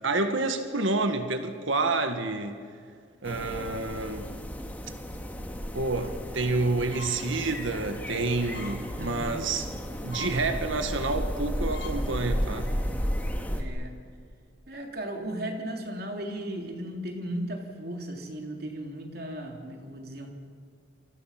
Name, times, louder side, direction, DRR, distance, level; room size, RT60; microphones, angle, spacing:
voice 1, 0.0-2.6 3.2-4.3 5.7-9.7 10.0-12.7, right 3 dB, 85° right, 1.7 m, -28 dB
sound 1, 3.2-13.6, equal, 10° left, 1.8 m, -33 dB
sound 2, 6.9-7.3 7.7-7.9 8.5-8.8 9.2-9.4 9.8-9.9 10.1-10.4 10.9-11.0 11.4-11.5 11.7-12.0 12.4-12.6, left 6 dB, 75° left, 5.3 m, -43 dB
voice 2, 9.0-9.4 13.5-13.9 14.7-20.3, right 1 dB, 50° right, 3.4 m, -36 dB
28.0 x 25.0 x 6.0 m
head